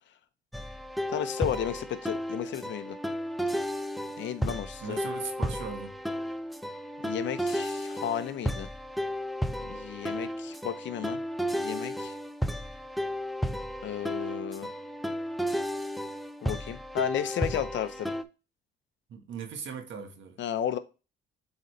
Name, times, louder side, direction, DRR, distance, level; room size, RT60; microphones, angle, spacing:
sound 1, 0.5-18.2, equal, ahead, 0.6 m, -33 dB
voice 1, 1.1-3.0 4.2-5.0 7.0-8.7 9.6-11.2 11.5-12.1 13.8-14.7 16.4-18.2 20.4-20.8, left 10 dB, 65° left, 0.9 m, -33 dB
voice 2, 4.8-6.0 19.1-20.4, right 6 dB, 70° right, 1.6 m, -39 dB
8.0 x 4.1 x 3.2 m
cardioid pair, 90°, 20 cm